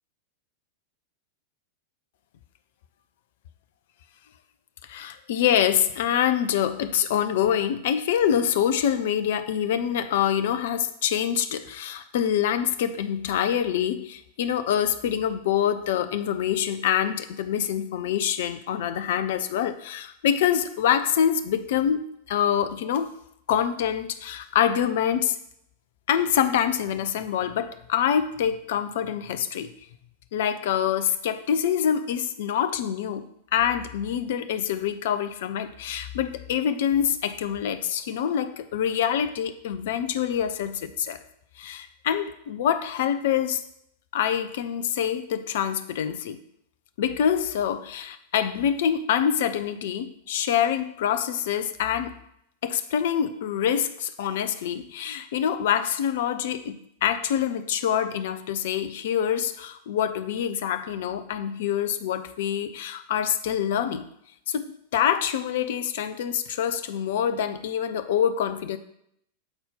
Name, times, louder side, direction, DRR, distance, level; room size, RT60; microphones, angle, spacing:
voice 1, 4.9-23.1 23.5-25.4 26.1-29.7 30.3-41.2 41.6-43.6 44.1-46.4 47.0-52.1 52.6-64.1 64.5-68.8, left 9 dB, 55° left, 10 dB, 0.5 m, -25 dB
8.0 x 4.3 x 5.3 m, 0.74 s
figure-of-eight pair, 90°, 0 cm